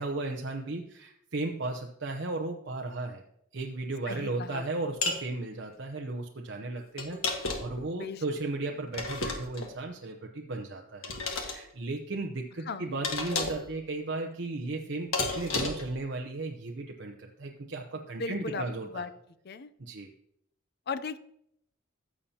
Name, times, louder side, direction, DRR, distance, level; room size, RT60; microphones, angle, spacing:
voice 1, 0.0-3.2 3.5-19.0 19.8-20.1, right 2 dB, 60° right, 1 dB, 0.8 m, -35 dB
voice 2, 4.1-4.6 8.0-8.2 12.7-13.0 18.2-18.6 18.9-19.1 19.4-19.7 20.9-21.2, left 4 dB, 50° left, 13 dB, 0.5 m, -36 dB
sound 1, 5.0-5.2 7.0-7.8 8.9-9.7 11.0-11.6 13.0-13.7 15.1-15.9, left 3 dB, 80° left, 1.7 m, -32 dB
15.0 x 7.1 x 2.9 m, 0.73 s
head